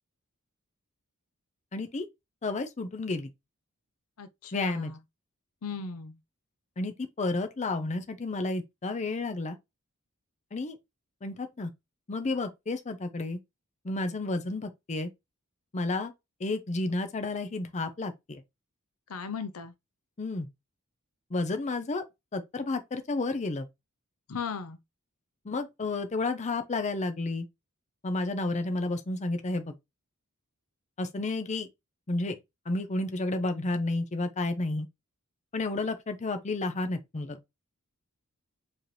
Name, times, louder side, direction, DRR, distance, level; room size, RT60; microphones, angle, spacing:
voice 1, 1.7-2.0 2.4-3.3 4.5-4.9 6.8-9.6 10.5-10.8 11.2-11.7 12.1-13.4 13.8-15.1 15.7-16.1 16.4-18.4 20.2-20.5 21.3-22.0 22.3-23.7 25.4-27.5 28.0-29.7 31.0-31.7 32.1-32.4 32.7-34.9 35.5-37.4, left 2 dB, 30° left, 0.6 m, -31 dB
voice 2, 4.2-5.0 5.6-6.2 19.1-19.7 24.3-24.8, left 5 dB, 75° left, 0.6 m, -37 dB
4.8 x 2.9 x 3.2 m
head